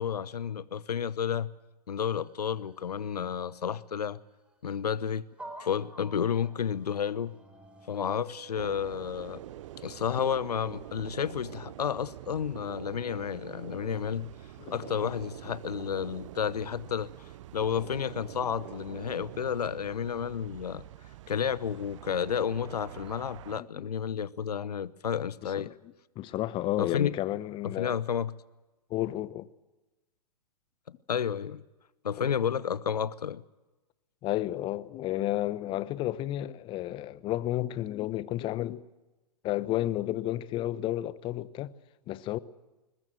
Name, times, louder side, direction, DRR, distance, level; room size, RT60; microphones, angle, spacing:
voice 1, 0.0-1.5 1.9-4.2 4.6-5.3 5.6-7.3 7.9-9.4 9.8-14.3 14.7-17.1 17.5-20.8 21.3-25.7 26.8-27.1 27.6-28.3 31.1-31.6 32.0-33.4, left 8 dB, 75° left, 1.0 m, -31 dB
sound 1, 2.1-3.0 3.5-3.6 4.4-4.6 5.4-11.2, right 2 dB, 5° right, 3.8 m, -51 dB
sound 2, 8.5-23.6, right 13 dB, 50° right, 0.8 m, -45 dB
voice 2, 26.2-27.9 28.9-29.5 32.2-32.3 34.2-38.8 39.4-41.7 42.1-42.4, left 14 dB, 25° left, 0.9 m, -32 dB
21.5 x 21.0 x 7.6 m
hypercardioid pair, 120°, 20 cm